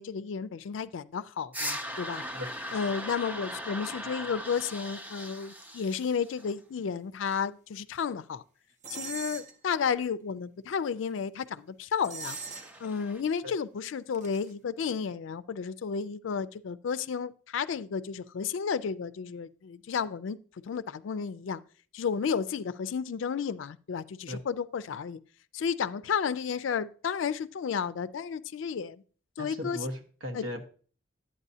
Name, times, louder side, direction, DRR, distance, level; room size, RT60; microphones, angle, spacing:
voice 1, 0.0-2.2 2.7-8.4 8.9-12.4 12.8-20.4 20.6-21.6 21.9-25.2 25.5-29.0 29.4-29.8 30.3-30.4, left 6 dB, 70° left, 0.4 m, -32 dB
sound 1, 1.5-6.5 12.2-13.2, equal, 10° right, 0.4 m, -39 dB
sound 2, 8.8-9.5 12.0-12.9 14.1-14.5, right 5 dB, 40° right, 0.7 m, -40 dB
voice 2, 29.4-30.7, left 1 dB, 75° right, 1.2 m, -37 dB
11.0 x 8.7 x 2.7 m
head